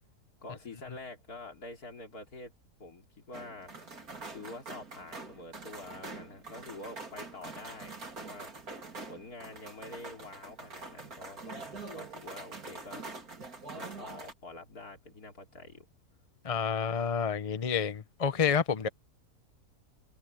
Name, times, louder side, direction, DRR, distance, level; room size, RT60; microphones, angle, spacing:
voice 1, 0.4-2.5 2.8-3.7 4.3-8.5 9.1-13.1 13.7-15.9 16.8-16.9, left 2 dB, 70° left, 3.7 m, -47 dB
sound 1, 3.3-14.3, right 3 dB, 65° right, 3.8 m, -45 dB
voice 2, 16.4-18.9, left 6 dB, 30° left, 0.7 m, -29 dB
omnidirectional pair, 1.7 m